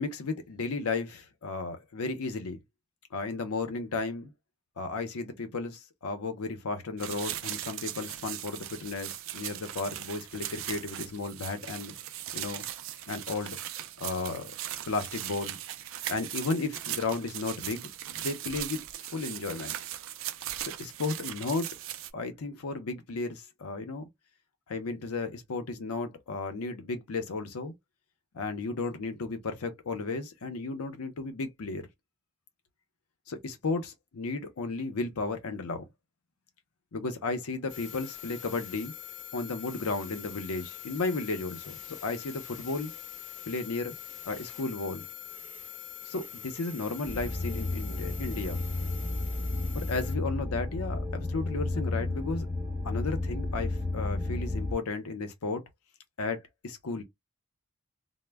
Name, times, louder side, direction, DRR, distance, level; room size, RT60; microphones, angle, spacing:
voice 1, 0.0-2.6 3.1-4.3 4.8-11.9 12.3-12.6 13.1-13.6 14.0-14.5 14.9-15.6 16.1-18.8 19.1-19.7 20.6-21.7 22.1-24.1 24.7-27.7 28.3-31.8 33.3-35.9 36.9-38.9 39.3-42.9 43.5-44.0 44.3-45.0 46.0-48.6 49.7-52.5 52.8-55.6 56.2-57.0, left 3 dB, 85° left, 0.6 m, -34 dB
sound 1, 7.0-22.1, right 12 dB, 65° right, 0.3 m, -39 dB
sound 2, 37.7-50.1, left 9 dB, 35° left, 0.5 m, -44 dB
sound 3, 47.0-54.7, left 2 dB, 15° right, 0.6 m, -32 dB
2.1 x 2.0 x 3.3 m
head